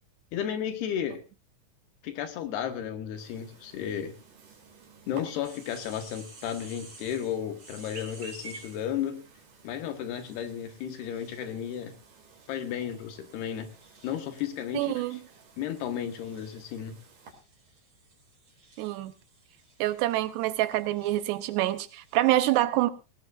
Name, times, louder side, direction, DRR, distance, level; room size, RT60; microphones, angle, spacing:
voice 1, 0.3-1.2 2.0-4.1 5.1-9.3 9.6-12.0 12.5-13.7 14.0-15.1 15.6-17.0, left 9 dB, 75° left, 7 dB, 3.4 m, -33 dB
Chirp tweet, 3.2-17.3, right 4 dB, 50° right, 4.3 m, -52 dB
sound 1, 5.4-8.9 10.1-22.3, right 3 dB, 35° right, 5.7 m, -55 dB
voice 2, 14.7-15.2 18.8-19.1 19.8-22.9, right 15 dB, 85° right, 12 dB, 3.0 m, -26 dB
18.5 x 18.0 x 2.6 m, 0.30 s
omnidirectional pair, 4.8 m